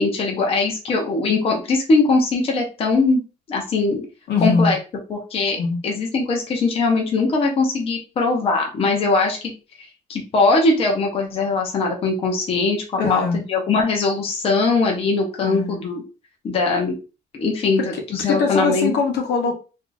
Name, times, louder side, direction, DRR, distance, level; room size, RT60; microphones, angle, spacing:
voice 1, 0.0-3.2 3.5-4.0 4.4-4.8 5.1-9.5 10.1-16.0 16.4-17.0 17.3-18.9, left 3 dB, 30° left, 1 dB, 0.6 m, -21 dB
voice 2, 4.3-4.7 5.5-5.8 13.0-13.4 15.4-15.7 17.8-19.5, left 4 dB, 70° left, 3 dB, 0.9 m, -22 dB
2.7 x 2.4 x 3.9 m, 0.33 s
cardioid pair, 180°, 18 cm